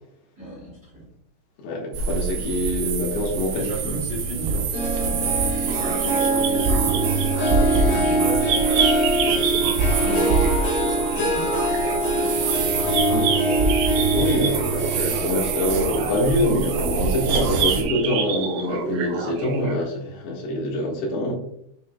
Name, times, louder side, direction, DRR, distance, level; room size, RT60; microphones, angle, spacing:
voice 1, 0.4-1.1 3.5-7.0 7.6-12.5 12.8-13.7 14.8-15.3 15.6-15.8, equal, 25° right, -5 dB, 2.6 m, -36 dB
voice 2, 1.6-4.0 10.0-10.4 13.1-13.3 14.1-21.3, left 1 dB, 85° left, -2 dB, 3.8 m, -25 dB
sound 1, 1.9-17.8, right 5 dB, 70° right, 2.7 m, -26 dB
Harp, 4.7-17.5 17.9-18.3 18.8-18.9, right 1 dB, 70° left, 3.0 m, -25 dB
sound 2, 5.7-19.8, right 5 dB, 90° right, 2.9 m, -28 dB
8.4 x 5.8 x 2.3 m, 0.70 s
omnidirectional pair, 4.7 m